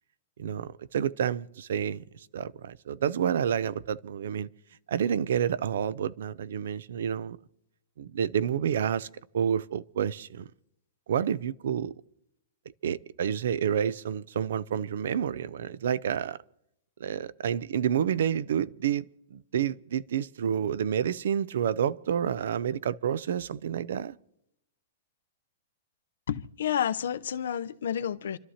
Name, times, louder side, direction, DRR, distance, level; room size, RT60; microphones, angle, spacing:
voice 1, 0.4-4.5 4.9-7.4 8.0-9.1 9.3-10.5 11.1-11.9 12.8-16.4 17.0-24.2, right 8 dB, 70° right, 0.5 m, -29 dB
voice 2, 26.3-28.4, left 9 dB, 75° left, 0.7 m, -30 dB
29.0 x 12.5 x 2.9 m
supercardioid pair, 175°, 0 cm